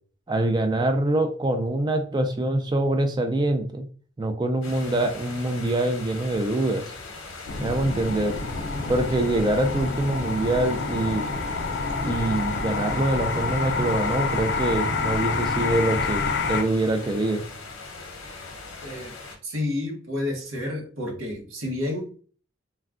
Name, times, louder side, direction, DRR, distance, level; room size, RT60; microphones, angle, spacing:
voice 1, 0.3-3.9 4.2-6.9 7.6-8.4 8.9-11.3 12.0-17.4, right 2 dB, 20° right, 5 dB, 0.3 m, -24 dB
sound 1, 4.6-19.4, left 3 dB, 75° left, 0.8 m, -40 dB
sound 2, 7.5-16.6, left 4 dB, 55° left, 0.4 m, -28 dB
voice 2, 18.8-19.1 19.4-22.1, left 2 dB, 75° right, 1 dB, 0.9 m, -30 dB
3.4 x 2.2 x 2.4 m, 0.42 s
head